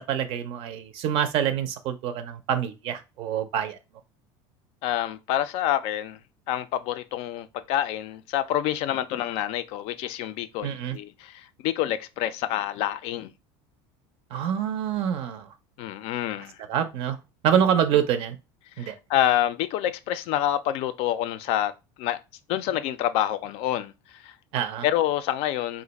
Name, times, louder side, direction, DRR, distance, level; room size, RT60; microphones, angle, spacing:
voice 1, 0.0-3.8 10.6-11.0 14.3-15.5 16.7-17.2 17.4-18.4 18.8-18.9 24.5-24.9, right 9 dB, 55° right, 0.4 m, -26 dB
voice 2, 4.8-6.2 6.5-13.3 15.8-16.6 18.8-21.7 22.0-22.2 22.5-24.3 24.8-25.8, left 12 dB, 60° left, 0.4 m, -27 dB
2.4 x 2.1 x 4.0 m
supercardioid pair, 115°, 11 cm